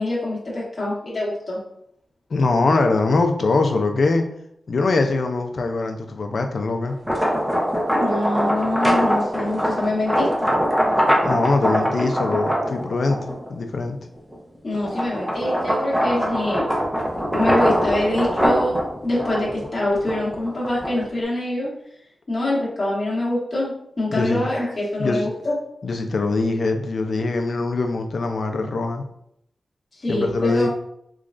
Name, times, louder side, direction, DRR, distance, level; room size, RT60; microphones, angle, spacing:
voice 1, 0.0-1.6 7.9-10.3 14.6-16.7 17.3-21.7 22.3-25.6 30.0-30.7, left 1 dB, 35° left, -6 dB, 1.0 m, -25 dB
voice 2, 2.3-4.3 4.7-7.0 11.2-14.0 24.1-24.5 25.0-25.3 25.8-29.1 30.1-30.7, left 3 dB, 60° left, 5 dB, 0.4 m, -22 dB
sound 1, 6.9-13.5 14.0-21.2, equal, 10° right, 0.7 m, -22 dB
3.6 x 3.1 x 2.5 m, 0.74 s
wide cardioid pair, 120°, 0 cm